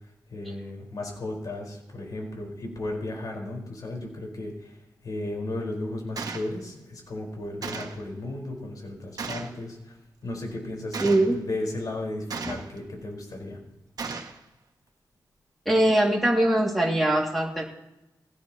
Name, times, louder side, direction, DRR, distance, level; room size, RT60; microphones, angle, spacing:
voice 1, 0.3-4.8 5.0-10.0 10.2-13.6, left 2 dB, 65° left, 0 dB, 4.9 m, -35 dB
Gunshot gunfire, 6.2-6.5 7.6-8.0 9.2-9.6 10.9-11.3 12.3-12.8 14.0-14.4, right 4 dB, 65° right, 1.4 m, -35 dB
voice 2, 11.0-11.4 12.5-12.6 15.7-17.6, right 1 dB, ahead, -3 dB, 2.6 m, -22 dB
19.0 x 17.0 x 3.1 m, 0.93 s
wide cardioid pair, 90°, 7 cm